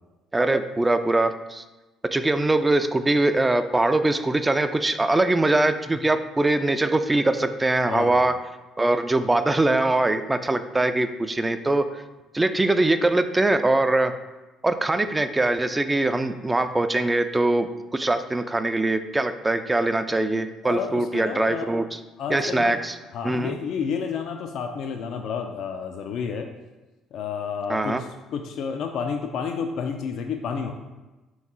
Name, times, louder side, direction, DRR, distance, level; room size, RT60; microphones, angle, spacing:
voice 1, 0.3-1.6 2.1-8.3 8.8-12.0 12.3-14.1 14.6-17.7 17.9-22.0 22.3-23.0 23.2-23.6 27.7-28.0, right 2 dB, 20° right, 10 dB, 0.3 m, -22 dB
voice 2, 7.8-8.3 20.6-21.7 22.2-22.8 23.1-26.5 27.1-30.7, left 6 dB, 65° left, 5 dB, 0.3 m, -30 dB
3.7 x 3.0 x 3.6 m, 1.1 s
hypercardioid pair, 55°, 0 cm